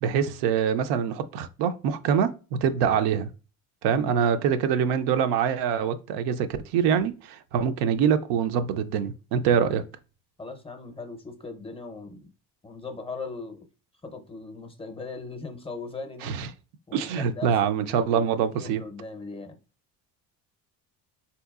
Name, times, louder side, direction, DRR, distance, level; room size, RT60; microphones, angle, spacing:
voice 1, 0.0-2.3 2.6-3.3 3.8-6.5 6.7-9.8 16.2-16.5 16.9-18.8, right 7 dB, 80° right, 0.5 m, -24 dB
voice 2, 3.9-4.7 10.4-12.3 12.6-13.6 14.0-16.4 16.9-19.6, left 3 dB, 15° left, 0.6 m, -39 dB
3.9 x 2.8 x 2.3 m
cardioid pair, 100°, 39 cm